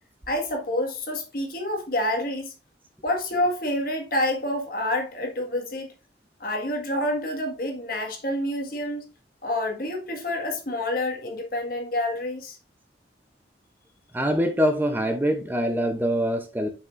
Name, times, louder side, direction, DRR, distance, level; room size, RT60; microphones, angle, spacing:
voice 1, 0.3-2.5 3.0-5.9 6.4-9.1 9.4-12.6, left 1 dB, 50° left, 1.7 m, -28 dB
voice 2, 14.1-16.7, equal, 10° right, 0.6 m, -24 dB
7.9 x 5.8 x 2.5 m
head